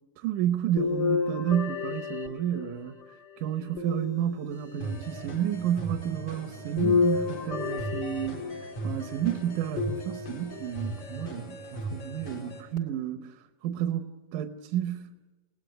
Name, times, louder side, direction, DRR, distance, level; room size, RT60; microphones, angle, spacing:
voice 1, 0.2-2.9 3.4-13.4 13.6-15.1, right 10 dB, 85° right, 8 dB, 2.5 m, -31 dB
sound 1, 0.8-3.0 3.8-4.8 6.8-8.8 9.8-10.6 11.3-11.4 12.8-12.9, left 5 dB, 35° left, 3.1 m, -30 dB
sound 2, 4.8-12.6, right 2 dB, 55° left, 5.1 m, -38 dB
29.0 x 19.0 x 8.0 m, 1.2 s
omnidirectional pair, 3.5 m